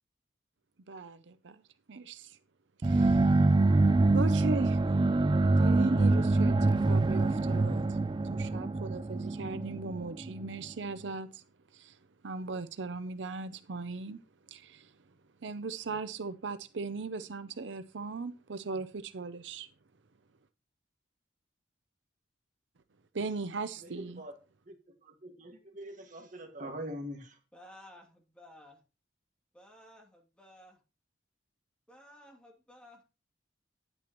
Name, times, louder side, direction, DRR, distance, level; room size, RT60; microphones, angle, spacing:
voice 1, 0.9-1.6 1.9-2.4 2.8-3.5 4.1-4.8 5.6-8.0 8.3-11.4 11.7-12.0 12.2-14.2 14.5-14.9 15.4-19.7 23.1-24.2, right 3 dB, 80° right, 0.6 m, -38 dB
sound 1, 2.8-10.6, right 2 dB, 25° right, 0.3 m, -25 dB
voice 2, 23.8-24.4 24.7-24.8 25.0-27.4, equal, 45° right, 1.9 m, -43 dB
voice 3, 27.5-28.8 29.5-30.8 31.9-33.0, left 1 dB, 5° left, 2.7 m, -55 dB
10.5 x 9.0 x 3.0 m
head